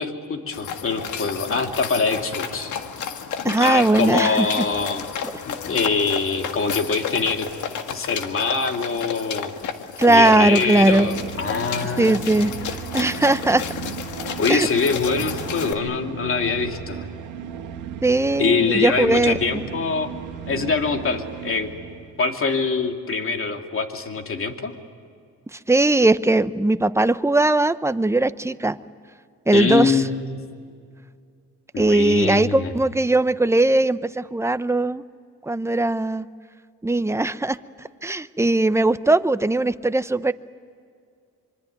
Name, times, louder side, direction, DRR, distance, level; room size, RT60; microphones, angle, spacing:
voice 1, 0.0-2.7 3.6-5.0 5.4-7.5 7.9-9.5 10.1-12.2 14.4-17.0 18.4-20.1 20.5-21.7 22.2-24.7 29.5-30.4 31.7-32.7, left 4 dB, 45° left, 4 dB, 2.8 m, -24 dB
sound 1, 0.5-15.7, left 8 dB, 75° left, 1.8 m, -32 dB
voice 2, 3.4-4.6 10.0-11.1 12.0-13.6 14.5-14.7 18.0-19.6 25.5-28.8 29.5-30.0 31.8-35.0 35.4-36.3 36.8-37.6 38.0-40.3, right 2 dB, 10° right, 13 dB, 0.8 m, -19 dB
sound 2, 10.6-22.2, right 8 dB, 80° right, 1.8 m, -35 dB
26.0 x 24.0 x 9.5 m, 2.3 s
cardioid pair, 90°, 30 cm